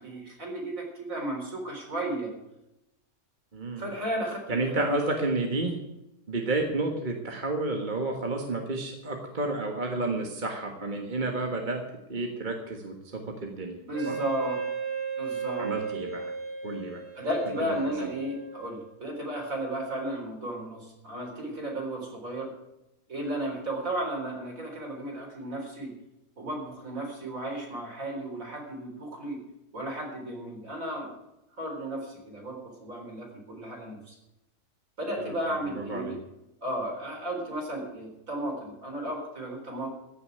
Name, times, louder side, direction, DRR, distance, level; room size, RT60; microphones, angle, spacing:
voice 1, 0.0-2.3 3.8-5.0 13.9-14.5 15.2-15.7 17.2-22.5 23.1-25.9 26.4-29.4 29.7-31.1 31.6-34.1 35.0-36.2 36.6-39.9, right 1 dB, 55° right, 0 dB, 4.6 m, -34 dB
voice 2, 3.5-3.9 4.5-5.8 6.3-11.8 12.1-13.8 14.0-14.2 15.6-16.3 16.6-17.0 17.6-17.7 35.2-35.3 35.7-36.1, right 2 dB, 30° right, 2 dB, 1.6 m, -31 dB
Wind instrument woodwind instrument, 13.9-19.0, right 5 dB, 75° right, 6.0 m, -35 dB
15.0 x 6.9 x 9.1 m, 0.89 s
omnidirectional pair, 1.8 m